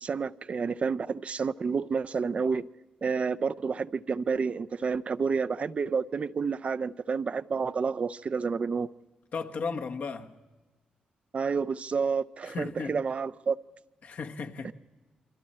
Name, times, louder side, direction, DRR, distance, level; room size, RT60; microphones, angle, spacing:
voice 1, 0.0-2.7 3.0-8.9 11.3-13.6 14.6-14.7, right 5 dB, 45° right, 0.6 m, -29 dB
voice 2, 9.3-10.4 12.4-13.0 14.0-14.7, left 5 dB, 60° left, 1.4 m, -35 dB
28.5 x 25.0 x 4.4 m
cardioid pair, 70°, 3 cm